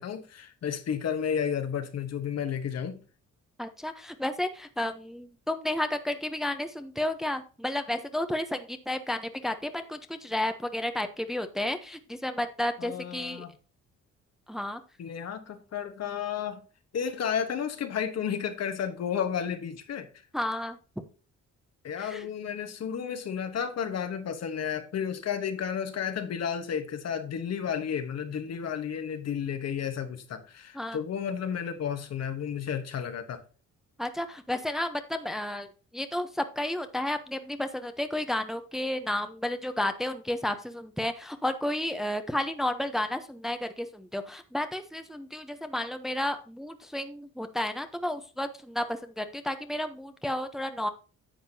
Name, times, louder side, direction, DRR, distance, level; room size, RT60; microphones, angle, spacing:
voice 1, 0.0-3.0 12.8-13.5 15.0-16.6 16.9-20.1 21.8-33.4, left 8 dB, 60° left, 1.2 m, -32 dB
voice 2, 3.6-13.5 14.5-14.8 20.3-20.8 22.0-22.3 30.7-31.0 34.0-50.9, left 1 dB, ahead, 0.8 m, -32 dB
10.0 x 7.2 x 2.8 m
cardioid pair, 90°, 30 cm